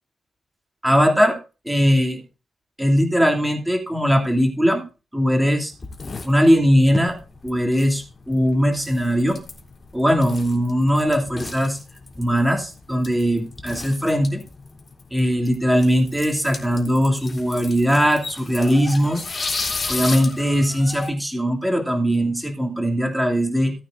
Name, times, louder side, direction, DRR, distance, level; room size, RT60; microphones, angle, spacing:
voice 1, 0.8-1.4 1.6-2.2 2.8-4.8 5.1-5.7 6.2-7.2 7.4-9.4 9.9-11.8 12.2-14.4 15.1-19.2 19.9-23.7, equal, 5° right, 1 dB, 2.9 m, -20 dB
sound 1, 5.7-21.1, left 4 dB, 40° left, 3.6 m, -35 dB
18.0 x 9.3 x 2.7 m, 0.31 s
wide cardioid pair, 115°, 0 cm